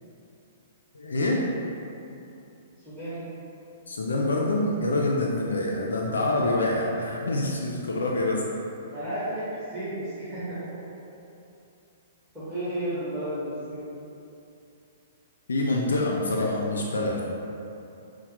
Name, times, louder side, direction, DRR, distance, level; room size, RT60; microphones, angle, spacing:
voice 1, 0.9-1.4 3.9-8.4 15.5-17.2, left 2 dB, 90° left, -1 dB, 0.4 m, -26 dB
voice 2, 2.8-3.2 4.6-4.7 8.9-10.8 12.3-13.8, right 1 dB, 5° right, -13 dB, 1.4 m, -33 dB
5.6 x 2.1 x 2.9 m, 2.7 s
hypercardioid pair, 130°, 0 cm